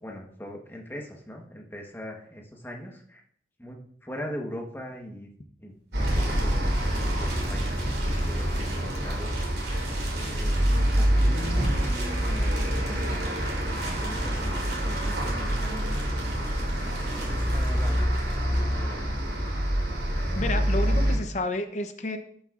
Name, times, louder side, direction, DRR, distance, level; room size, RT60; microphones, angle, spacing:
voice 1, 0.0-3.2 3.6-5.3 5.6-5.7 6.1-6.6 7.0-9.4 10.1-10.6 10.9-11.7 12.2-13.2 14.0-16.8 17.2-19.2, equal, 10° left, 1 dB, 1.1 m, -41 dB
sound 1, 5.9-21.2, equal, 80° right, 3.8 m, -26 dB
sound 2, 6.0-18.7, right 3 dB, 60° right, 3.0 m, -43 dB
voice 2, 20.3-22.2, left 2 dB, 40° left, 7 dB, 0.7 m, -30 dB
11.5 x 7.7 x 2.5 m, 0.63 s
head